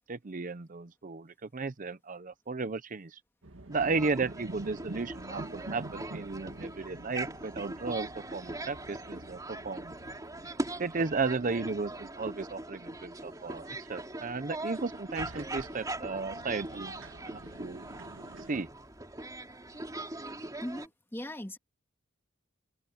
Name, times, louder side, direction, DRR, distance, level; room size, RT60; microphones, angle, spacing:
voice 1, 0.1-3.2 3.7-9.9 10.8-17.8 18.5-18.7, right 4 dB, 40° right, 0.7 m, -34 dB
sound 1, 3.4-18.5, right 2 dB, 85° right, 1.8 m, -49 dB
sound 2, 3.7-20.9, right 2 dB, 20° right, 3.1 m, -41 dB
voice 2, 20.6-21.6, equal, 10° left, 2.0 m, -39 dB
open air
head